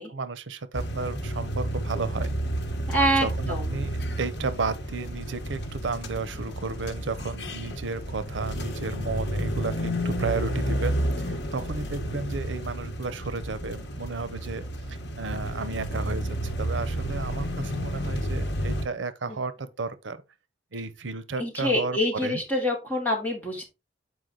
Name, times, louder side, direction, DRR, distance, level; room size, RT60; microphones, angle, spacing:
voice 1, 0.0-2.3 3.0-14.6 14.9-20.2 20.7-22.4, right 4 dB, 85° right, 0.7 m, -33 dB
sound 1, 0.7-18.9, equal, 65° left, 1.2 m, -31 dB
voice 2, 2.9-3.8 19.3-19.4 21.4-23.7, equal, 10° left, 2.9 m, -26 dB
8.1 x 4.8 x 3.8 m
head